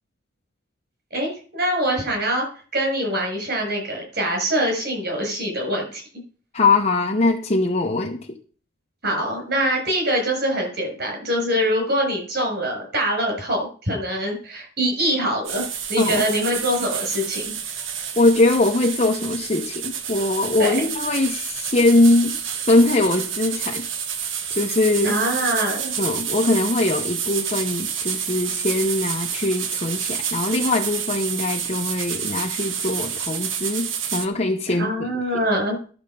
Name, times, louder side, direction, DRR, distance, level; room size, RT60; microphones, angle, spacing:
voice 1, 1.1-2.4 2.7-6.0 9.0-15.6 15.9-17.5 20.6-20.8 25.0-25.9 34.8-35.8, right 1 dB, 50° right, 1 dB, 7.1 m, -24 dB
voice 2, 6.5-8.4 16.0-16.2 18.2-22.4 22.6-23.9 24.5-25.1 26.0-34.9, left 2 dB, 35° left, 0 dB, 0.9 m, -21 dB
sound 1, 15.4-34.3, right 8 dB, 75° right, 1.2 m, -29 dB
12.5 x 7.1 x 5.4 m, 0.41 s
head